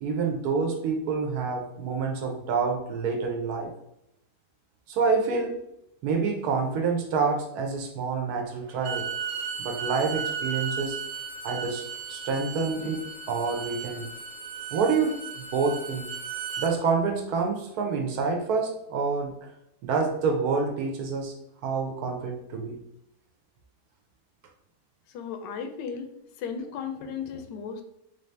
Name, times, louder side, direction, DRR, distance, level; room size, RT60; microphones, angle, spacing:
voice 1, 0.0-3.7 4.9-5.6 6.0-9.0 9.6-11.0 11.4-14.1 14.7-16.1 16.6-19.3 19.8-21.3 21.6-22.8, right 5 dB, 70° right, 3 dB, 1.1 m, -27 dB
Bowed string instrument, 8.7-16.7, right 6 dB, 90° right, 1.3 m, -35 dB
voice 2, 25.1-26.1 26.4-27.8, left 6 dB, 85° left, 6 dB, 1.2 m, -35 dB
4.0 x 2.7 x 3.2 m, 0.81 s
omnidirectional pair, 1.8 m